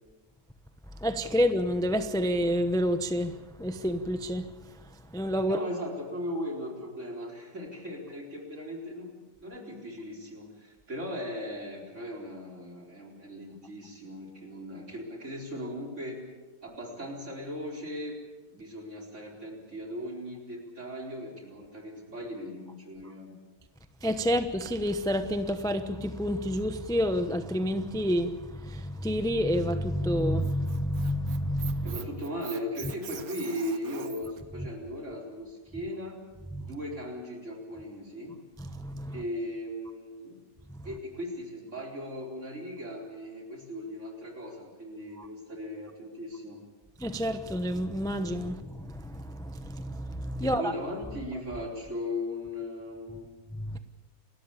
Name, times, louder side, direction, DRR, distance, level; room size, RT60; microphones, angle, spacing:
voice 1, 1.0-4.5 5.1-5.6 24.0-32.0 36.5-36.6 38.6-39.2 45.2-45.3 47.0-50.7 53.6-53.8, equal, 5° left, 0.8 m, -29 dB
voice 2, 5.4-16.3 16.6-23.4 31.8-36.2 36.6-38.4 39.1-40.4 40.8-46.6 50.4-53.3, left 1 dB, 55° right, 4.7 m, -38 dB
Squeak, 30.2-34.4, right 8 dB, 80° right, 1.6 m, -44 dB
29.5 x 13.5 x 8.5 m
omnidirectional pair, 1.5 m